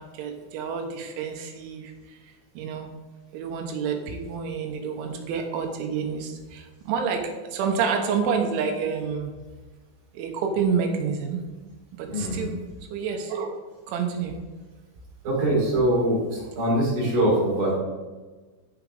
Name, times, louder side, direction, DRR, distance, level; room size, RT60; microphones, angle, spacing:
voice 1, 0.0-2.2 2.6-2.9 3.3-9.3 10.1-11.4 12.0-12.6 12.9-13.6 13.9-14.4, right 6 dB, 80° right, 3 dB, 3.1 m, -28 dB
voice 2, 12.1-12.5 15.2-17.8, right 1 dB, 40° right, -5 dB, 4.2 m, -23 dB
14.5 x 4.9 x 3.4 m, 1.3 s
omnidirectional pair, 5.8 m